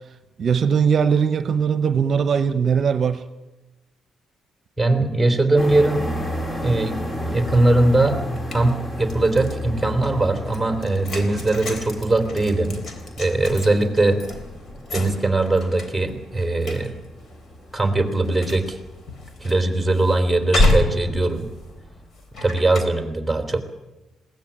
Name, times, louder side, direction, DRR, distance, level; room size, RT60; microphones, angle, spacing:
voice 1, 0.4-3.2, right 6 dB, 50° right, 11 dB, 0.8 m, -20 dB
voice 2, 4.8-6.1 6.6-7.0 7.2-8.2 8.5-12.8 13.2-14.2 14.9-16.9 17.7-18.8 19.4-21.5 22.4-23.6, right 2 dB, 5° right, 6 dB, 3.4 m, -20 dB
sound 1, 5.6-22.1, left 1 dB, 25° left, 2.0 m, -34 dB
sound 2, 8.4-9.6 10.0-22.8, left 1 dB, 55° left, 3.8 m, -29 dB
21.0 x 17.0 x 8.9 m, 1.1 s
cardioid pair, 90°, 0 cm